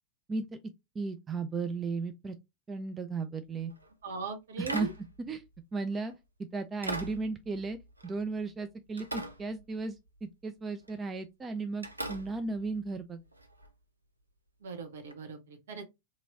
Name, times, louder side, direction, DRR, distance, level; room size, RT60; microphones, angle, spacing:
voice 1, 1.0-2.4 2.7-3.7 4.6-4.9 5.3-5.4 5.7-6.1 6.5-7.8 8.0-9.9 10.2-13.2, right 4 dB, 20° right, 0.4 m, -35 dB
sound 1, 3.6-3.9 4.7-6.1 6.8-8.6 9.0-10.2 10.8-11.1 11.8-13.7 15.1-15.2, right 2 dB, 85° right, 0.5 m, -42 dB
voice 2, 4.0-4.9 14.6-15.8, right 4 dB, 60° right, 0.9 m, -39 dB
3.0 x 2.7 x 3.8 m
figure-of-eight pair, 90°, 0 cm